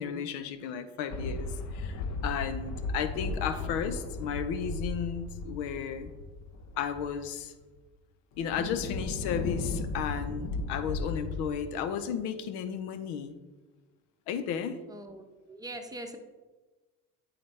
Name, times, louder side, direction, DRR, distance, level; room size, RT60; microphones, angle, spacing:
voice 1, 0.0-6.1 6.8-7.5 8.4-13.3 14.3-14.8, left 7 dB, 75° left, 10 dB, 0.8 m, -34 dB
sound 1, 1.1-7.3 7.8-7.9 8.4-11.5, left 3 dB, 40° left, 0.8 m, -36 dB
voice 2, 3.2-3.7 14.9-16.2, right 1 dB, 10° right, 5 dB, 0.8 m, -43 dB
8.6 x 4.0 x 3.3 m, 1.2 s
supercardioid pair, 80°, 41 cm